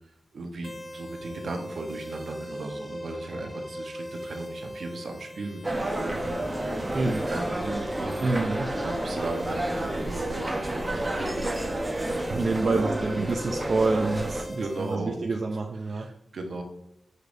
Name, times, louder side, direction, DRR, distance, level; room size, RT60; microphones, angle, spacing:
voice 1, 0.3-13.2 14.5-15.3 15.8-16.6, right 2 dB, 75° right, 4 dB, 0.8 m, -37 dB
sound 1, 0.6-15.0, equal, 30° left, 0.7 m, -39 dB
sound 2, 5.6-14.4, right 1 dB, 25° right, 0.8 m, -31 dB
voice 2, 8.2-8.7 12.3-16.1, right 3 dB, 55° right, 3 dB, 0.4 m, -27 dB
6.6 x 3.1 x 2.5 m, 0.80 s
cardioid pair, 50°, 0 cm